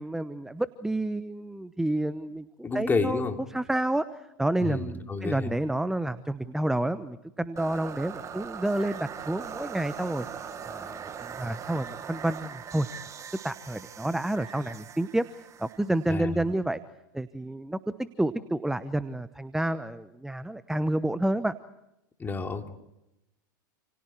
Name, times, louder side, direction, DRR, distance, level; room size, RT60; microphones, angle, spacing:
voice 1, 0.0-10.3 10.6-12.9 13.4-15.3 15.6-16.8 17.1-21.5, right 1 dB, 5° right, 13 dB, 1.0 m, -29 dB
voice 2, 2.6-3.4 4.6-5.5 16.1-16.4 22.2-22.7, left 4 dB, 20° left, 4 dB, 3.2 m, -30 dB
sound 1, 7.6-16.6, right 7 dB, 30° right, 1.9 m, -41 dB
29.5 x 29.0 x 4.6 m, 0.89 s
hypercardioid pair, 95°, 11 cm